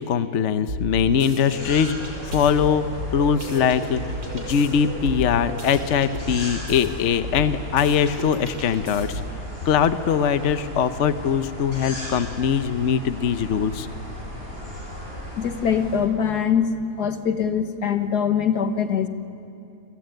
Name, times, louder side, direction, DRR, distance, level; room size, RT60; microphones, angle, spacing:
voice 1, 0.0-2.0 2.2-2.8 3.1-9.2 9.7-13.9, left 7 dB, 55° left, 11 dB, 1.0 m, -22 dB
sound 1, 0.7-1.6 2.0-4.7 5.0-6.9 7.2-9.4, equal, 80° right, 6.5 m, -33 dB
sound 2, 1.5-16.0, equal, 35° left, 8.0 m, -36 dB
voice 2, 15.4-16.7 17.0-19.1, left 7 dB, 75° left, 8 dB, 1.9 m, -23 dB
29.0 x 21.5 x 9.2 m, 2.7 s
omnidirectional pair, 1.7 m